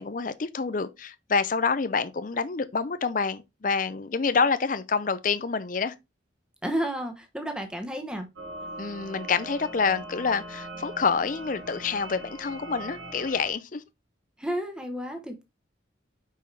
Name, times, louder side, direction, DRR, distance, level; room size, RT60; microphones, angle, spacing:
voice 1, 0.0-5.9 8.8-13.8, left 5 dB, 45° left, 0.5 m, -27 dB
voice 2, 6.6-8.3 14.4-15.4, right 1 dB, 5° right, 0.9 m, -31 dB
sound 1, 8.4-13.5, right 1 dB, 70° right, 1.7 m, -41 dB
5.6 x 5.5 x 3.2 m
head